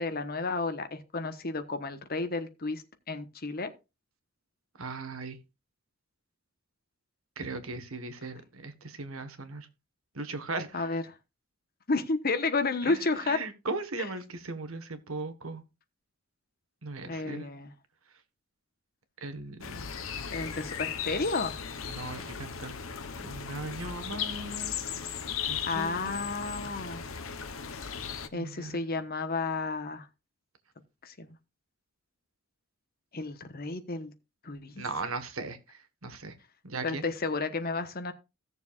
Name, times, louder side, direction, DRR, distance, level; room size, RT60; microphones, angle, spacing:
voice 1, 0.0-3.7 10.7-11.0 11.9-13.4 17.1-17.7 20.2-21.6 25.7-27.0 28.3-30.1 31.0-31.3 33.1-34.1 34.4-34.8 36.8-38.1, left 3 dB, 45° left, 1.2 m, -32 dB
voice 2, 4.8-5.4 7.4-9.7 10.1-10.9 12.8-13.0 13.2-15.6 16.8-17.5 19.2-19.9 21.8-22.7 23.2-24.8 25.4-26.1 28.3-28.8 34.8-36.3 36.6-37.1, right 3 dB, 80° right, 1.5 m, -38 dB
sound 1, 19.6-28.3, left 7 dB, 70° left, 1.0 m, -37 dB
16.5 x 6.9 x 2.5 m
head